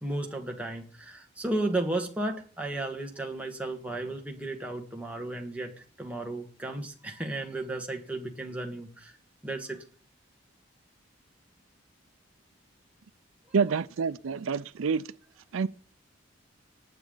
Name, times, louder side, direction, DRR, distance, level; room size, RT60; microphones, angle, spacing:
voice 1, 0.0-9.2 9.4-9.8, right 2 dB, 5° right, 1.6 m, -34 dB
voice 2, 13.5-15.0 15.5-15.7, right 5 dB, 80° right, 0.5 m, -27 dB
19.5 x 8.0 x 3.9 m
head